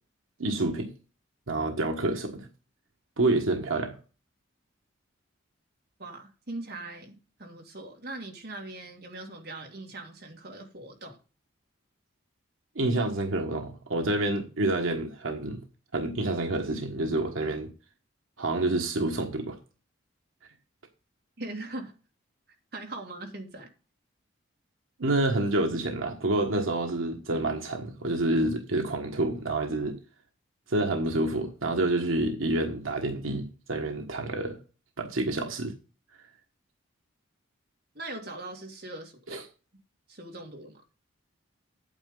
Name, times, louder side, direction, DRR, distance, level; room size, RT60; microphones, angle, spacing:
voice 1, 0.4-0.9 1.5-2.5 3.2-4.0 12.7-15.6 15.9-17.7 18.4-19.6 25.0-30.0 30.7-34.6 35.0-35.7 39.3-39.4, right 2 dB, 85° right, 1.3 m, -28 dB
voice 2, 6.0-11.2 21.4-21.9 22.7-23.7 37.9-39.4 40.1-40.8, right 2 dB, 50° right, 2.2 m, -41 dB
8.8 x 8.6 x 3.8 m
head